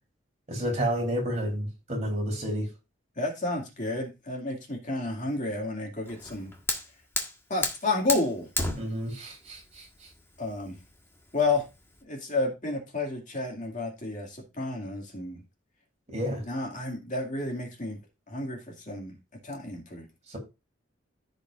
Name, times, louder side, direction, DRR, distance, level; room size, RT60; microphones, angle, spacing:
voice 1, 0.5-2.7 8.8-9.8 16.1-16.4 20.3-20.4, equal, 35° right, 3.4 m, -30 dB
voice 2, 3.2-6.5 7.5-8.5 10.4-10.7 11.3-11.6 12.0-15.4 16.5-18.0 18.3-18.6 18.9-19.1 19.4-20.0, left 2 dB, 40° left, 2.3 m, -31 dB
Fire, 6.1-12.0, left 2 dB, 15° left, 1.4 m, -35 dB
14.5 x 5.2 x 2.5 m
head